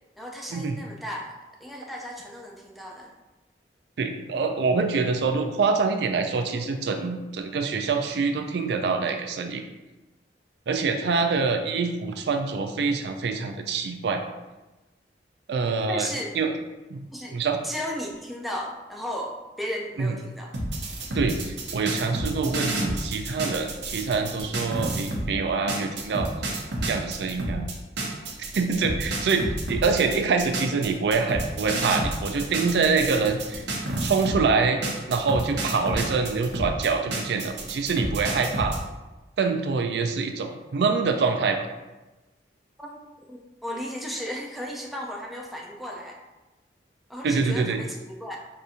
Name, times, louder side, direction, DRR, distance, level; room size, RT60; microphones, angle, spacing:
voice 1, 0.2-3.1 15.9-16.3 17.1-17.3 17.6-20.5 42.8-43.0 43.3-46.2 47.1-48.4, equal, ahead, -1 dB, 0.4 m, -35 dB
voice 2, 4.0-9.6 10.7-14.2 15.5-16.1 16.3-16.6 16.9-17.0 17.3-17.6 20.0-20.2 21.1-26.3 26.8-27.7 28.5-33.6 34.0-34.8 35.1-38.8 39.4-41.7 47.2-47.8, right 4 dB, 70° right, 5 dB, 0.4 m, -25 dB
sound 1, 20.5-25.3 25.7-34.5 34.8-38.8, right 2 dB, 90° right, 0.8 m, -30 dB
4.8 x 2.6 x 2.7 m, 1.1 s
head